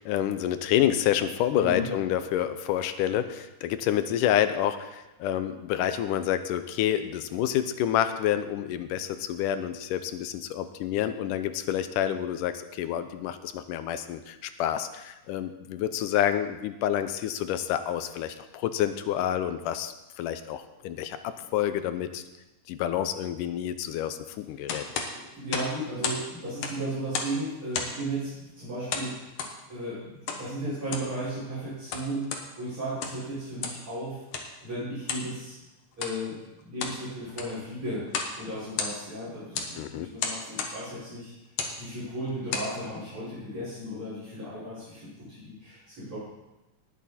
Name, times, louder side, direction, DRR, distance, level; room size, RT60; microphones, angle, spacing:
voice 1, 0.0-22.2 22.7-24.9 39.8-40.1, left 11 dB, 85° left, 10 dB, 2.2 m, -28 dB
voice 2, 1.6-1.9 24.6-24.8 25.4-29.3 29.7-34.2 34.6-35.5 36.0-41.3 41.7-46.2, right 1 dB, 40° right, -13 dB, 6.8 m, -35 dB
sound 1, 24.7-26.2 26.5-27.4 27.7-28.1 28.9-29.6 30.3-30.4 30.8-31.1 31.7-32.5 32.9-33.3 33.6-33.9 34.3-34.5 35.1-35.3 35.9-36.2 36.6-37.0 37.3-37.6 38.1-38.4 38.6-39.2 39.5-39.7 40.2-40.8 41.5-41.8 42.3-42.7, left 5 dB, 60° left, 2.0 m, -33 dB
19.0 x 8.5 x 4.3 m, 1.0 s
omnidirectional pair, 3.7 m